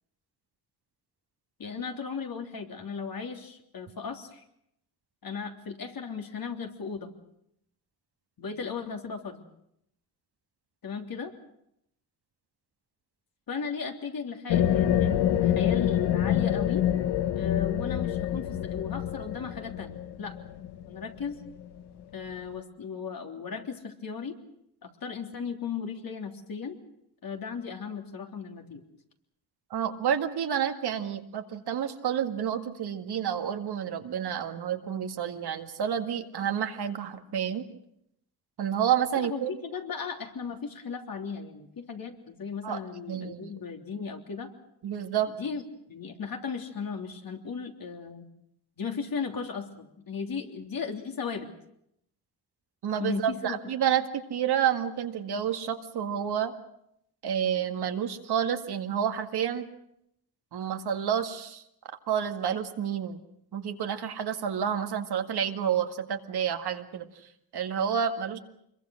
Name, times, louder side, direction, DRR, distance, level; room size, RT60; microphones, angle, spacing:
voice 1, 1.6-4.4 5.2-7.1 8.4-9.4 10.8-11.3 13.5-16.9 17.4-20.4 20.9-21.4 22.1-24.3 24.8-26.8 27.2-28.8 39.2-44.5 45.3-48.3 48.8-51.5 53.0-53.6, left 6 dB, 60° left, 3 dB, 3.4 m, -36 dB
sound 1, 14.5-21.8, left 10 dB, 90° left, 1.2 m, -27 dB
voice 2, 29.7-37.6 38.6-39.5 42.6-42.8 43.1-43.5 44.8-45.3 52.8-56.5 57.2-59.7 60.5-61.6 62.1-63.2 63.5-67.1 67.5-68.4, right 9 dB, 75° right, 6 dB, 2.1 m, -29 dB
25.5 x 22.5 x 6.5 m, 0.76 s
cardioid pair, 65°, 39 cm